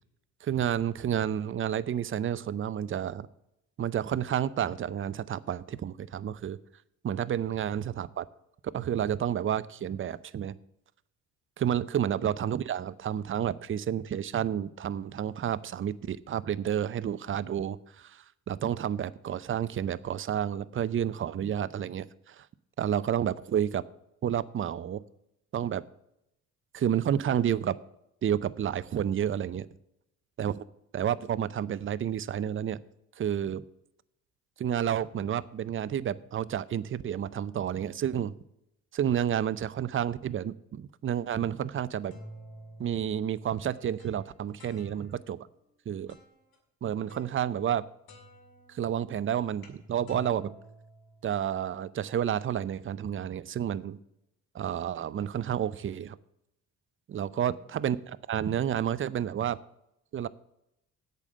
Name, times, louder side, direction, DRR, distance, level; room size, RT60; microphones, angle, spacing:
voice 1, 0.4-3.3 3.8-6.6 7.0-8.3 8.7-10.6 11.6-22.5 22.8-23.8 24.2-25.0 25.5-25.8 26.7-27.8 28.2-29.7 30.4-30.6 30.9-32.8 33.2-33.6 34.6-38.3 38.9-42.2 42.8-45.4 45.9-46.2 46.8-47.8 48.7-50.5 51.2-54.0 54.5-56.2 57.1-59.6 60.1-60.3, right 9 dB, 30° right, 17 dB, 0.5 m, -30 dB
sound 1, 42.1-45.4 46.1-46.6 47.1-47.8 48.1-51.6, equal, 55° left, 2.2 m, -51 dB
8.3 x 6.7 x 7.4 m, 0.82 s
hypercardioid pair, 50°, 43 cm